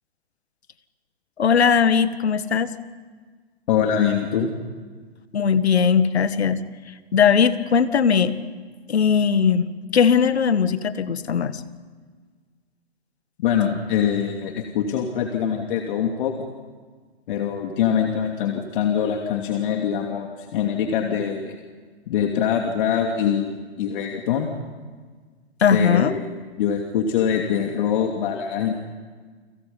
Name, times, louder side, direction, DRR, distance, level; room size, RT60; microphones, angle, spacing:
voice 1, 1.4-2.7 5.3-6.6 7.1-8.3 8.9-9.7 9.9-11.6 25.6-26.1, left 7 dB, 75° left, 12 dB, 1.9 m, -19 dB
voice 2, 3.7-4.5 13.4-16.5 17.3-21.6 22.1-24.5 25.7-26.3 26.6-28.7, left 8 dB, 50° left, 2 dB, 2.8 m, -23 dB
29.5 x 26.5 x 5.6 m, 1.5 s
hypercardioid pair, 125°, 32 cm